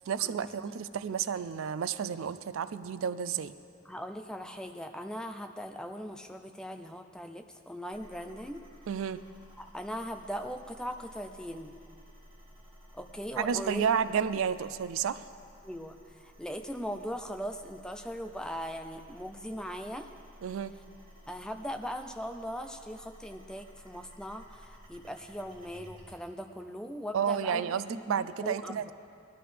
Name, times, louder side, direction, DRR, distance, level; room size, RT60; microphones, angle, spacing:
voice 1, 0.1-3.5 8.9-9.2 13.4-15.3 20.4-20.7 27.1-28.9, right 7 dB, 80° right, 15 dB, 0.4 m, -31 dB
voice 2, 3.9-8.6 9.6-11.8 12.9-13.8 15.6-20.1 21.3-27.6 27.9-28.9, equal, 5° left, 6 dB, 0.4 m, -39 dB
sound 1, 7.9-26.2, equal, 40° right, 3.1 m, -55 dB
17.0 x 12.0 x 3.4 m, 2.3 s
head